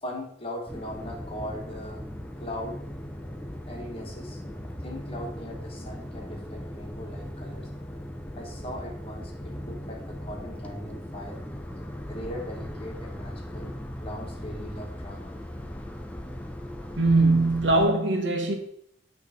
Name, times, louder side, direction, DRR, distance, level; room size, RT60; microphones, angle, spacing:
voice 1, 0.0-2.1 2.4-2.8 3.7-4.4 4.8-7.7 8.3-11.4 12.1-13.7 14.0-15.3, left 1 dB, 30° left, 1.3 m, -39 dB
sound 1, 0.7-17.9, equal, 10° left, 0.5 m, -38 dB
voice 2, 17.0-18.5, right 2 dB, 85° right, 1.1 m, -21 dB
8.3 x 3.3 x 4.2 m
head